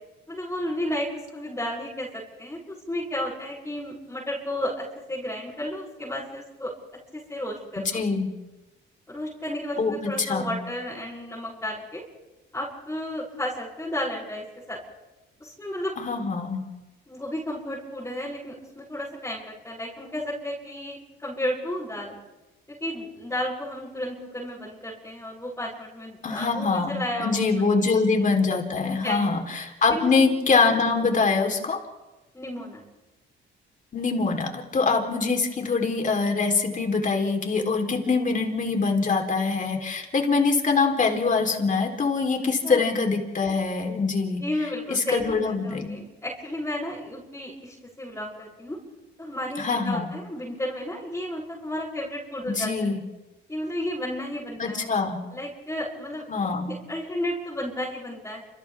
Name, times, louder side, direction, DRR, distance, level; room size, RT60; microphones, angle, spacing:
voice 1, 0.3-6.7 7.1-8.0 9.1-12.0 12.5-14.8 15.4-16.0 17.1-22.1 22.7-27.9 28.9-29.3 29.9-30.1 32.3-32.8 42.6-42.9 44.4-48.8 49.2-52.7 53.5-54.9 55.3-58.4, left 1 dB, 10° left, -8 dB, 7.8 m, -33 dB
voice 2, 7.9-8.3 9.8-10.5 16.0-16.6 26.2-31.8 33.9-44.4 44.9-46.0 49.6-50.1 52.5-53.0 54.6-55.2 56.3-56.7, left 4 dB, 40° left, 3 dB, 4.0 m, -24 dB
29.5 x 28.5 x 3.7 m, 1.1 s
cardioid pair, 90°, 20 cm